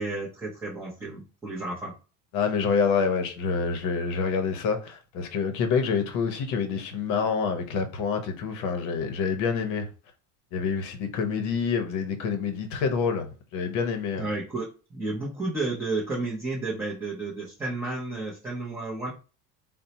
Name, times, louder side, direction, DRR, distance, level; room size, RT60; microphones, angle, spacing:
voice 1, 0.0-1.9 14.2-19.1, right 2 dB, 5° right, 0.4 m, -32 dB
voice 2, 2.3-9.9 10.5-13.3 13.5-14.3, left 5 dB, 50° left, 0.7 m, -27 dB
4.0 x 2.1 x 2.7 m
cardioid pair, 175°, 37 cm